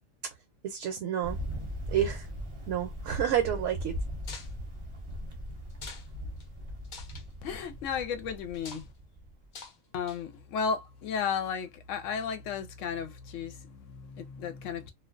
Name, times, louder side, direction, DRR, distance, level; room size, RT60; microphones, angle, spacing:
voice 1, 0.6-1.4 1.9-2.3 2.7-4.0, right 10 dB, 70° right, 0.9 m, -29 dB
Thunder, 1.2-9.5, equal, 35° right, 0.5 m, -39 dB
sound 1, 4.2-4.5 5.7-6.1 6.4-6.5 6.8-7.2 8.5-8.9 9.5-9.8 10.1-10.4, left 5 dB, 55° left, 0.5 m, -45 dB
voice 2, 7.4-8.9 9.9-14.9, left 6 dB, 75° left, 0.9 m, -34 dB
2.3 x 2.2 x 2.3 m
omnidirectional pair, 1.3 m